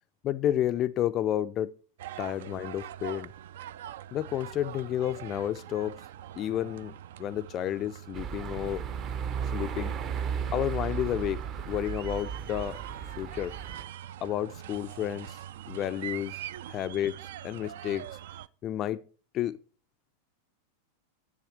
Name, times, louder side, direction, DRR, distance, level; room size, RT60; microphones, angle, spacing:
voice 1, 0.2-1.7 2.2-3.3 4.1-6.0 6.4-8.8 9.5-9.9 10.5-11.4 11.7-12.8 13.2-13.6 14.2-15.4 15.7-16.4 16.7-18.1 18.6-19.0 19.3-19.6, left 11 dB, 30° left, 0.3 m, -31 dB
sound 1, 2.0-18.5, right 11 dB, 55° right, 0.3 m, -43 dB
sound 2, 8.1-13.8, right 7 dB, 30° right, 0.7 m, -35 dB
10.0 x 7.5 x 4.5 m
figure-of-eight pair, 90°, 0 cm